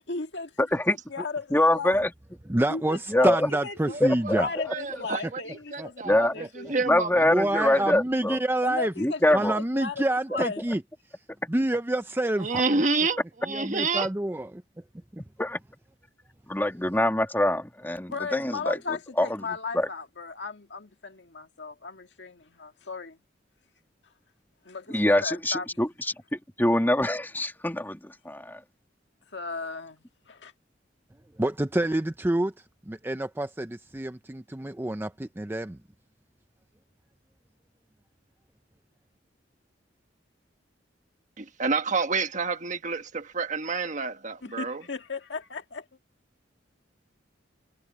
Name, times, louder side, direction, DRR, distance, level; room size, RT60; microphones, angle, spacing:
voice 1, 0.1-0.5 0.9-2.0 2.7-3.7 4.4-6.8 8.6-9.2 9.7-10.6 18.1-23.2 24.7-25.8 29.3-30.5 44.4-45.9, left 4 dB, 70° left, 1.9 m, -36 dB
voice 2, 0.6-1.2 1.5-2.1 3.1-3.5 4.0-4.7 6.0-6.3 6.8-8.4 9.0-9.6 15.4-15.6 16.5-19.4 19.7-19.9 24.9-25.9 26.3-28.6, left 1 dB, 10° left, 2.5 m, -24 dB
voice 3, 2.5-4.5 5.8-6.5 7.3-8.9 9.3-10.8 11.5-12.5 13.5-14.6 15.1-15.2 31.4-32.5 32.9-35.8, right 1 dB, 10° right, 0.6 m, -27 dB
voice 4, 3.9-4.4 4.7-5.4 5.7-6.3 6.7-7.2 7.7-7.8 12.4-14.1 41.4-44.8, right 4 dB, 45° right, 1.4 m, -28 dB
head